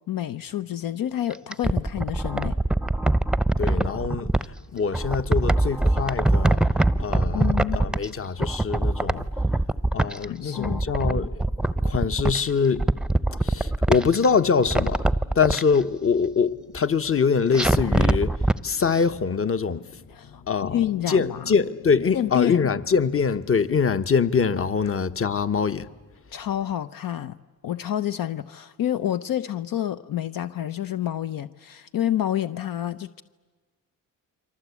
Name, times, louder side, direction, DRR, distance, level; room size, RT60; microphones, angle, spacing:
voice 1, 0.1-2.6 7.3-7.8 10.3-10.8 20.1-20.4 20.7-21.4 22.1-22.6 26.3-27.4 27.6-33.2, left 11 dB, 65° left, 0.9 m, -28 dB
sound 1, 1.3-4.5 4.9-8.1 8.4-10.3 10.6-12.4 12.8-14.3 14.6-15.6 17.5-18.6 18.9-19.0, right 2 dB, ahead, 0.8 m, -23 dB
voice 2, 3.6-4.3 4.7-6.6 7.0-9.3 9.9-11.4 11.8-12.9 13.3-15.0 15.3-20.1 20.4-25.9, left 5 dB, 40° left, 1.2 m, -24 dB
29.0 x 24.0 x 8.4 m
cardioid pair, 80°, 36 cm